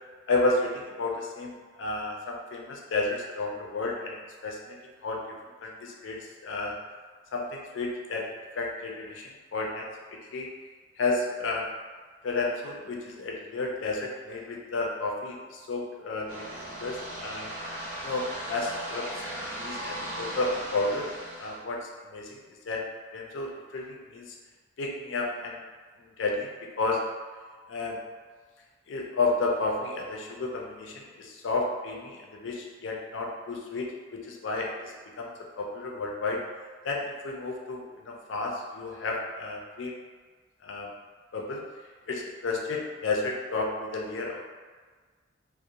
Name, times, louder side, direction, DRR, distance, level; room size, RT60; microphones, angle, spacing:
voice 1, 0.3-4.8 5.0-5.2 5.6-6.8 7.3-8.3 8.5-10.5 11.0-11.7 12.2-17.5 18.0-19.2 19.6-21.1 21.4-22.4 22.6-22.9 23.1-24.3 24.8-25.6 26.0-27.0 27.7-28.0 28.9-35.3 35.6-36.4 36.8-39.9 40.6-40.9 41.3-41.6 42.1-44.4, left 3 dB, 75° left, -1 dB, 0.4 m, -32 dB
sound 1, 16.3-21.6, right 1 dB, 45° right, 0.6 m, -37 dB
2.4 x 2.0 x 2.8 m, 1.5 s
head